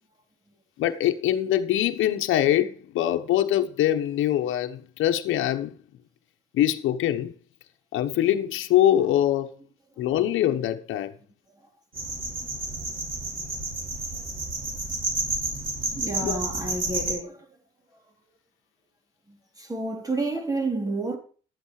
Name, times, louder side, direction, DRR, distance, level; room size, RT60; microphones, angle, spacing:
voice 1, 0.8-5.8 6.5-7.3 7.9-9.5 10.0-11.1 16.2-16.4, left 12 dB, 85° left, 1.1 m, -23 dB
sound 1, 11.9-17.1, right 2 dB, 45° right, 6.6 m, -30 dB
voice 2, 15.9-17.5 19.3-21.2, right 2 dB, 20° right, 3.9 m, -30 dB
12.5 x 8.3 x 4.9 m
cardioid pair, 90°, 20 cm